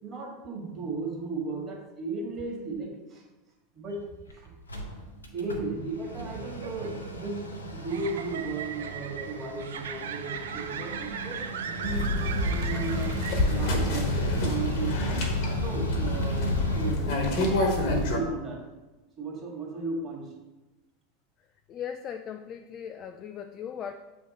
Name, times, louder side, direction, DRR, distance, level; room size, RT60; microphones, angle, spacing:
voice 1, 0.0-3.2 3.7-4.0 4.3-4.6 5.3-13.1 13.5-15.3 15.6-18.7 19.2-20.3, right 3 dB, 25° right, -1 dB, 1.8 m, -35 dB
Mechanical fan, 3.9-4.0 4.3-4.4 4.6-16.9, equal, 80° left, 0.8 m, -36 dB
sound 1, 6.3-13.9, right 8 dB, 65° right, 0.4 m, -39 dB
sound 2, 11.8-18.2, left 1 dB, 50° left, 1.2 m, -27 dB
voice 2, 21.7-23.9, left 8 dB, 35° left, 7 dB, 0.3 m, -38 dB
7.5 x 3.5 x 4.2 m, 1.1 s
figure-of-eight pair, 80°, 0 cm